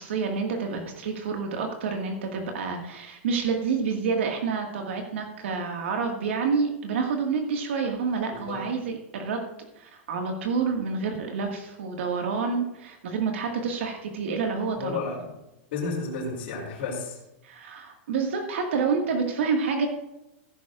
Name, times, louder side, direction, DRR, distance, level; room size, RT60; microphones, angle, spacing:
voice 1, 0.0-15.0 17.4-19.9, right 5 dB, 80° right, 2 dB, 1.9 m, -28 dB
voice 2, 14.8-15.3 15.7-17.2, left 4 dB, 60° left, -5 dB, 3.3 m, -32 dB
14.5 x 11.5 x 2.5 m, 0.91 s
supercardioid pair, 165°, 7 cm